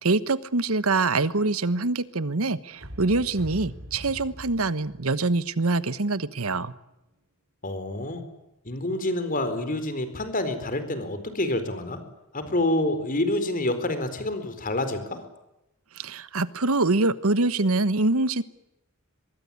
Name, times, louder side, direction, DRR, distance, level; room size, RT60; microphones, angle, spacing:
voice 1, 0.0-6.7 15.9-18.4, right 3 dB, 85° right, 15 dB, 1.3 m, -24 dB
sound 1, 2.7-6.6, equal, 65° right, 4.2 m, -43 dB
voice 2, 7.6-8.2 8.6-12.0 12.3-15.2, left 1 dB, 40° left, 10 dB, 4.4 m, -27 dB
24.5 x 22.0 x 8.6 m, 0.93 s
head